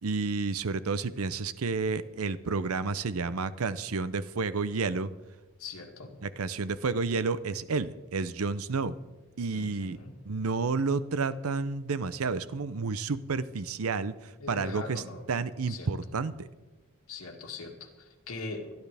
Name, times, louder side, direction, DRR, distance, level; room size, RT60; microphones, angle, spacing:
voice 1, 0.0-5.1 6.2-9.0 9.4-10.0 10.2-15.0 15.3-16.5, right 4 dB, 80° right, 15 dB, 0.6 m, -30 dB
voice 2, 5.6-6.1 9.5-10.2 14.4-15.3 15.7-15.9 17.1-18.7, left 3 dB, 80° left, 1 dB, 2.3 m, -41 dB
24.5 x 10.5 x 3.5 m, 1.2 s
head